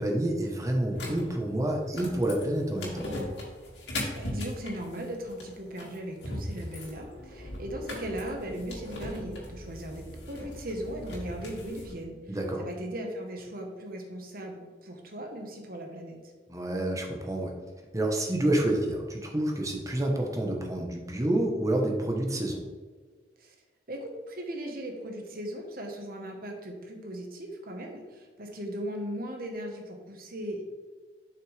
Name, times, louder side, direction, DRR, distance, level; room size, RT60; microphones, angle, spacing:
voice 1, 0.0-3.1 12.3-12.6 16.5-17.5 17.9-22.6, right 1 dB, 20° right, 1 dB, 1.1 m, -28 dB
sound 1, 0.9-11.9, left 1 dB, 85° left, 2.2 m, -39 dB
voice 2, 4.1-16.2 23.4-23.5 23.9-30.6, right 1 dB, 55° right, 2 dB, 1.3 m, -38 dB
7.6 x 5.8 x 3.4 m, 1.4 s
head